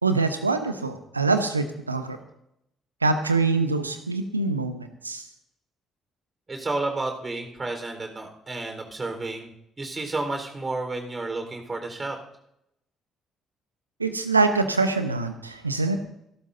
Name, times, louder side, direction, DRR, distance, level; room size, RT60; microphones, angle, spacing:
voice 1, 0.0-2.2 3.0-5.2 14.0-16.0, right 3 dB, 90° right, 9 dB, 0.9 m, -24 dB
voice 2, 6.5-9.5 9.8-12.2, right 2 dB, 25° right, 4 dB, 4.3 m, -31 dB
27.5 x 12.5 x 2.7 m, 0.78 s
figure-of-eight pair, 45°, 0 cm